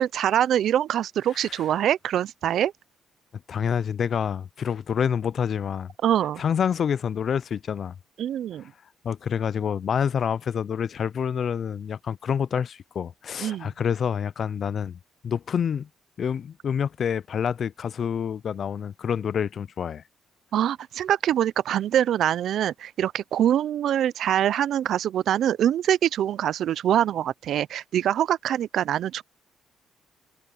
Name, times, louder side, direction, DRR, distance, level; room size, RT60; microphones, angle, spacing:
voice 1, 0.0-2.7 6.0-6.4 8.2-8.6 13.4-13.7 20.5-29.2, right 10 dB, 70° right, 0.5 m, -24 dB
voice 2, 3.5-5.9 6.4-7.9 9.0-15.9 16.2-20.0, left 7 dB, 55° left, 0.4 m, -27 dB
cardioid pair, 90°, 0 cm